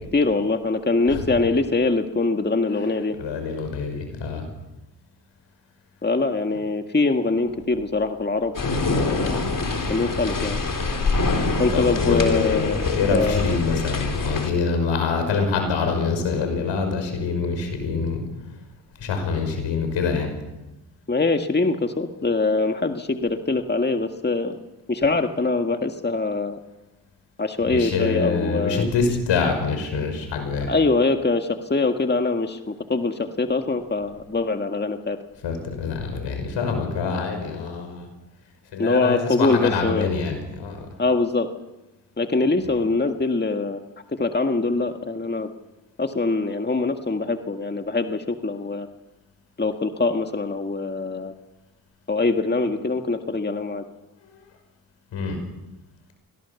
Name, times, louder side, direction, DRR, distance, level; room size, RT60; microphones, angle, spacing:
voice 1, 0.1-3.2 6.0-8.5 8.9-9.4 9.9-10.6 11.6-12.8 13.1-13.6 21.1-24.6 24.9-26.6 27.4-28.9 30.7-35.2 38.8-40.1 41.0-41.5 42.2-43.8 44.1-45.5 46.0-48.9 49.6-51.3 52.1-53.8, left 3 dB, 25° left, 6 dB, 1.8 m, -23 dB
voice 2, 3.2-4.4 11.7-18.2 19.0-20.3 27.7-30.7 35.4-38.1 38.7-40.9 42.6-42.8 54.2-54.4 55.1-55.4, left 5 dB, 80° left, 5 dB, 5.7 m, -25 dB
sound 1, 8.5-14.5, left 3 dB, 45° left, 3.9 m, -25 dB
24.0 x 17.0 x 7.2 m, 1.0 s
supercardioid pair, 55°, 44 cm